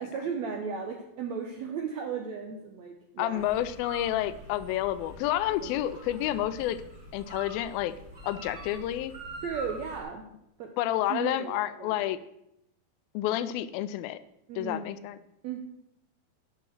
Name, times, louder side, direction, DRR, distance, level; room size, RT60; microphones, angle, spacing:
voice 1, 0.0-3.4 5.6-5.7 9.4-10.3 10.6-10.7 11.1-12.0 14.5-14.9 15.4-15.6, right 6 dB, 75° right, 3 dB, 1.6 m, -35 dB
voice 2, 3.2-6.8 7.1-7.9 8.2-9.1 10.8-12.2 13.1-14.2 14.6-15.2, left 13 dB, 85° left, 14 dB, 2.3 m, -29 dB
sound 1, 3.3-10.0, right 1 dB, 25° right, 1.1 m, -45 dB
10.5 x 6.0 x 6.4 m, 0.81 s
omnidirectional pair, 4.3 m